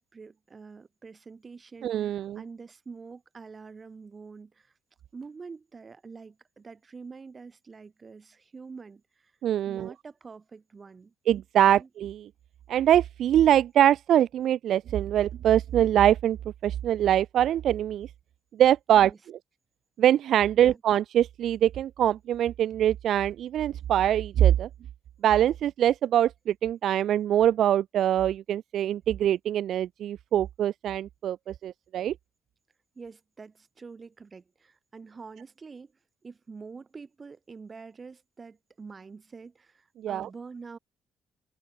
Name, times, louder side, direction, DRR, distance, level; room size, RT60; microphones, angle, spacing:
voice 1, 0.0-4.7 5.1-9.3 9.7-11.1 11.6-11.9 19.0-19.3 20.5-20.8 33.0-35.9 36.2-40.8, right 4 dB, 35° right, 5.1 m, -46 dB
voice 2, 1.8-2.4 9.4-9.9 11.3-12.2 12.7-16.4 16.6-18.1 18.6-19.1 20.0-24.7 25.2-32.1 40.0-40.3, right 11 dB, 70° right, 0.4 m, -23 dB
open air
cardioid pair, 90°, 0 cm